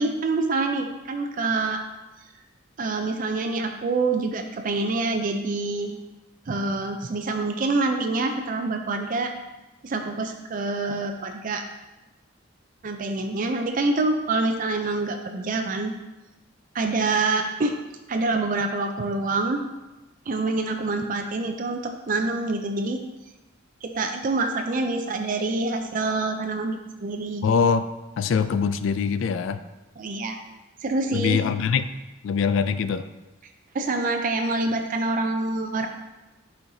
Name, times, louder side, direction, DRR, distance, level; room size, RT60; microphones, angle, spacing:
voice 1, 0.0-1.8 2.8-6.0 6.5-9.3 9.8-11.6 12.8-15.9 16.7-17.8 18.1-19.6 20.3-23.0 23.8-27.5 30.0-30.4 30.8-31.4 33.7-35.9, right 3 dB, 40° right, 4 dB, 0.4 m, -26 dB
voice 2, 27.4-27.8 28.2-29.6 31.1-31.9 32.2-33.1, left 6 dB, 70° left, 11 dB, 0.3 m, -23 dB
8.4 x 4.4 x 2.7 m, 1.0 s
head